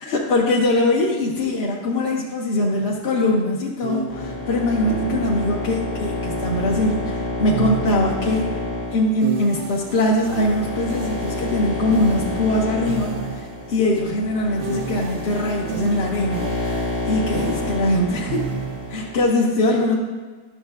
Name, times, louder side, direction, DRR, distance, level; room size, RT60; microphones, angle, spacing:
voice 1, 0.0-8.6 8.9-18.5 18.9-19.9, left 1 dB, 55° left, -2 dB, 0.8 m, -22 dB
sound 1, 2.8-3.0 3.8-5.6 6.5-8.4 9.2-13.7 14.6-19.1, right 6 dB, 85° right, 0.5 m, -32 dB
sound 2, 4.1-19.3, left 2 dB, 75° left, 1.7 m, -29 dB
11.0 x 6.4 x 2.3 m, 1.4 s
omnidirectional pair, 1.7 m